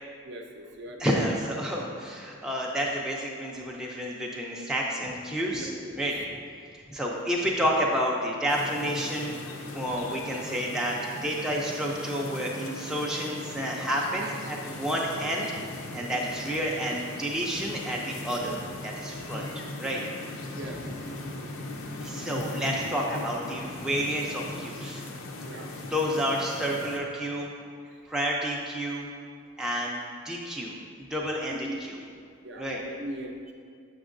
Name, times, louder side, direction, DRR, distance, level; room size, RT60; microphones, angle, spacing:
voice 1, 0.2-1.1 5.5-6.0 20.5-20.9 25.4-25.7 31.5-31.8 32.4-33.5, right 1 dB, 55° right, 2 dB, 0.6 m, -39 dB
voice 2, 1.0-5.7 6.0-6.2 6.7-9.4 9.7-15.5 15.9-20.0 20.3-20.4 20.6-20.7 22.0-25.0 25.8-27.5 27.8-29.1 29.6-32.0 32.6-32.8, equal, 5° right, -3 dB, 0.4 m, -30 dB
sound 1, 8.5-27.0, left 2 dB, 90° left, 0.5 m, -39 dB
6.5 x 6.1 x 2.5 m, 2.2 s
head